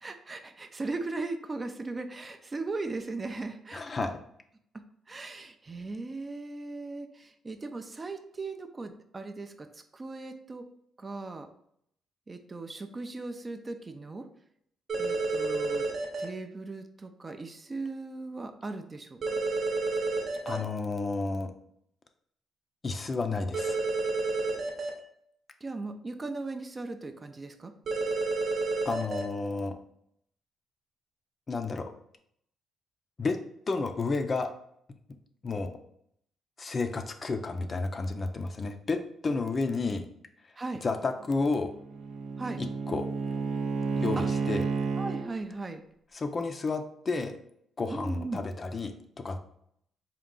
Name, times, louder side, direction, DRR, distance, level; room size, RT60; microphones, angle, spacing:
voice 1, 0.0-4.1 5.1-10.6 11.0-11.5 12.3-14.3 15.0-15.8 16.2-19.2 25.6-27.7 40.6-40.8 42.4-42.6 44.2-44.3 45.0-45.8 47.9-48.4, right 3 dB, 30° right, 7 dB, 0.4 m, -38 dB
voice 2, 3.7-4.1 20.5-21.5 22.8-23.8 28.9-29.7 31.5-31.9 33.2-33.4 33.7-34.5 35.4-35.7 36.6-40.1 40.8-41.7 42.6-43.1 44.0-44.7 46.1-47.4 47.8-49.4, left 3 dB, 35° left, 7 dB, 0.4 m, -31 dB
sound 1, 14.9-16.2 19.2-20.6 23.5-24.9 27.9-29.2, right 3 dB, 50° right, 0.8 m, -30 dB
Bowed string instrument, 41.2-45.3, right 4 dB, 75° right, 0.5 m, -31 dB
3.7 x 2.3 x 3.7 m, 0.71 s
cardioid pair, 90°, 0 cm